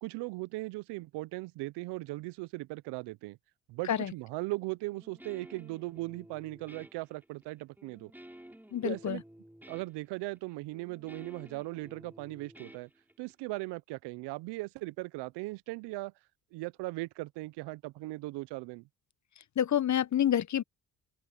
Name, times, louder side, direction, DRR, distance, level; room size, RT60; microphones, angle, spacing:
voice 1, 0.0-3.4 3.7-8.1 8.8-9.2 9.7-12.9 13.2-16.1 16.5-18.9, right 21 dB, 75° right, 0.9 m, -38 dB
Guitar, 4.8-13.5, right 1 dB, 5° right, 5.6 m, -53 dB
voice 2, 8.7-9.2 19.6-20.6, left 10 dB, 45° left, 1.1 m, -28 dB
open air
hypercardioid pair, 60°, 41 cm